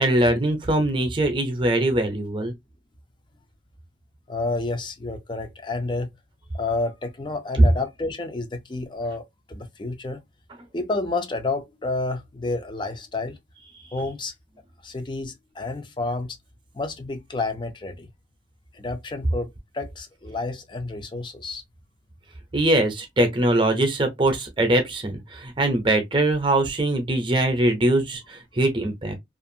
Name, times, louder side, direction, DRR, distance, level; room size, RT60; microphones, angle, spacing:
voice 1, 0.0-2.5 7.6-7.7 22.5-29.2, right 1 dB, 25° right, 0.6 m, -22 dB
voice 2, 4.3-6.1 6.5-10.2 10.7-13.4 13.9-14.3 14.8-16.4 16.7-18.1 18.7-21.6, left 3 dB, 25° left, 0.5 m, -30 dB
2.5 x 2.4 x 2.6 m
head